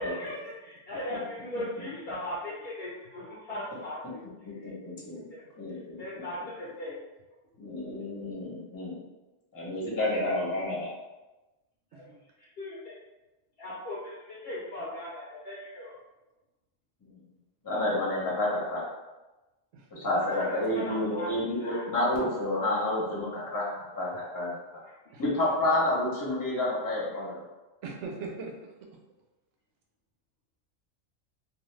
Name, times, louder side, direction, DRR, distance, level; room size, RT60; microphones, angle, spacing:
voice 1, 0.0-4.2 4.6-4.7 5.3-5.4 6.0-7.0 11.9-12.1 12.4-12.8 13.6-15.9 20.3-21.3 21.6-21.8 24.9-25.0, left 1 dB, 60° left, -6 dB, 0.8 m, -38 dB
voice 2, 4.4-5.3 5.6-6.2 7.6-9.0 9.5-10.9 17.0-17.2 17.6-18.9 19.9-24.6 25.2-27.4, left 1 dB, 20° left, -6 dB, 0.7 m, -30 dB
voice 3, 19.7-20.1 25.1-25.2 27.8-28.7, right 4 dB, 85° right, 1 dB, 0.9 m, -40 dB
2.4 x 2.4 x 3.1 m, 1.1 s
omnidirectional pair, 1.2 m